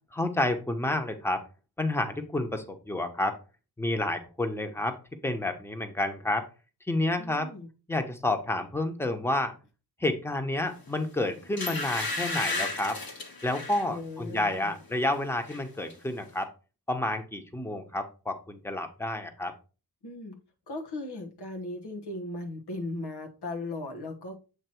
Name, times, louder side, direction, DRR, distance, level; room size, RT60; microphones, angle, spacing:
voice 1, 0.1-1.4 1.8-3.4 3.8-5.0 5.2-6.5 6.9-7.5 7.9-9.5 10.0-13.0 13.4-16.5 16.9-19.5, left 1 dB, 5° left, 1.0 m, -30 dB
voice 2, 7.2-7.7 13.9-14.7 20.0-20.4 20.7-24.4, left 2 dB, 85° left, 1.2 m, -37 dB
sound 1, 10.9-11.0 11.6-13.9 14.4-14.6 14.9-15.6 15.9-16.0, left 2 dB, 65° left, 1.6 m, -33 dB
8.0 x 2.9 x 4.4 m
cardioid pair, 50°, 39 cm